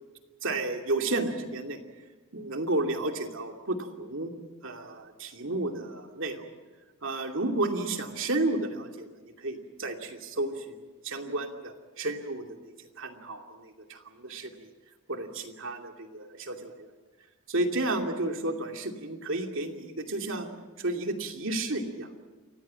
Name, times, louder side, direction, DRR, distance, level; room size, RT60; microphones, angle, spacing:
voice 1, 0.4-1.8 2.3-4.3 4.6-6.5 7.0-14.7 15.1-16.9 17.5-20.5 20.8-22.1, right 2 dB, 65° right, 4 dB, 2.7 m, -32 dB
29.0 x 15.5 x 8.8 m, 1.3 s
head